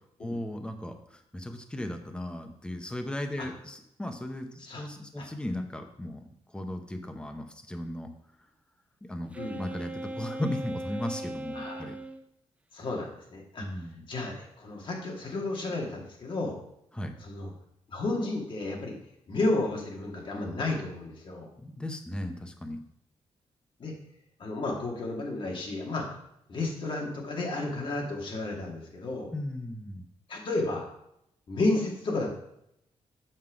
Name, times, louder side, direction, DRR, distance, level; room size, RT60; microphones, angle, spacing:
voice 1, 0.2-6.3 6.5-8.1 9.0-9.3 9.6-12.0 13.6-14.0 16.9-17.2 21.6-22.8 29.3-30.0, left 1 dB, 10° left, 5 dB, 0.8 m, -36 dB
Wind instrument woodwind instrument, 9.3-12.2, right 1 dB, 10° right, 0.4 m, -38 dB
voice 2, 11.5-11.9 12.7-13.7 14.1-16.6 17.2-17.5 17.9-19.0 19.3-21.5 23.8-23.9 24.4-26.1 26.5-29.3 30.3-30.9 31.5-32.3, left 2 dB, 50° left, 0 dB, 1.9 m, -32 dB
7.7 x 5.5 x 4.9 m, 0.78 s
wide cardioid pair, 145°, 11 cm